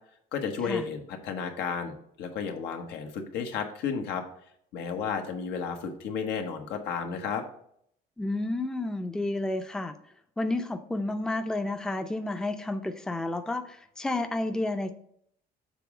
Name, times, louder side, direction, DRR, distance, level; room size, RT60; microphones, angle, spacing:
voice 1, 0.3-4.2 4.7-7.4, left 6 dB, 85° left, 4 dB, 1.0 m, -32 dB
voice 2, 8.2-9.9 10.4-14.9, left 2 dB, 5° left, 7 dB, 0.4 m, -31 dB
6.9 x 3.6 x 4.9 m, 0.67 s
cardioid pair, 110°, 17 cm